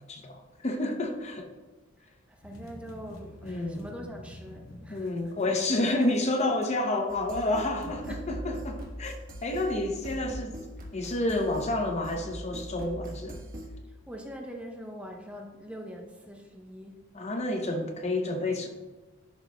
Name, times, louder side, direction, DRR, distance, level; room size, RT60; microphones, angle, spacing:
voice 1, 0.1-1.5 3.4-3.8 4.9-9.1 9.4-10.6 10.9-13.4 17.1-18.7, left 2 dB, 35° left, 4 dB, 0.6 m, -29 dB
voice 2, 2.3-5.1 5.4-5.6 8.1-8.2 14.1-17.1, equal, 5° right, 1 dB, 0.7 m, -43 dB
sound 1, 2.4-9.3, left 1 dB, 80° left, 0.9 m, -49 dB
sound 2, 7.1-13.7, right 1 dB, 45° right, 1.2 m, -41 dB
11.0 x 5.1 x 2.2 m, 1.2 s
head